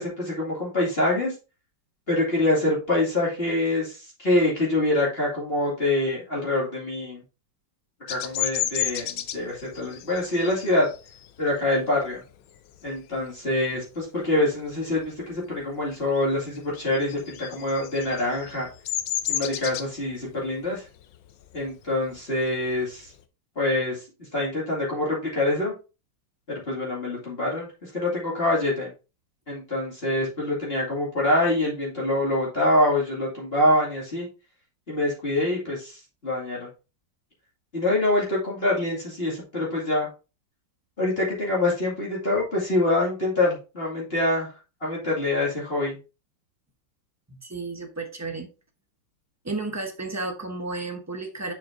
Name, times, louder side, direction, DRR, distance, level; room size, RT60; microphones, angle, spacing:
voice 1, 0.0-1.3 2.1-7.2 8.1-10.9 11.4-12.2 12.8-18.7 19.3-20.8 21.5-23.1 23.6-24.0 24.3-25.7 26.5-27.7 27.9-28.9 29.5-34.3 34.9-36.7 37.7-40.1 41.0-44.5 44.8-46.0, left 1 dB, 30° left, -5 dB, 2.5 m, -25 dB
Bird vocalization bird call bird song, 8.1-13.3 13.7-14.1 14.4-15.6 15.8-23.2, left 11 dB, 85° left, 1.4 m, -33 dB
voice 2, 47.3-48.5 49.4-51.5, right 3 dB, 15° right, 4 dB, 0.5 m, -32 dB
7.1 x 6.0 x 2.6 m, 0.31 s
omnidirectional pair, 2.1 m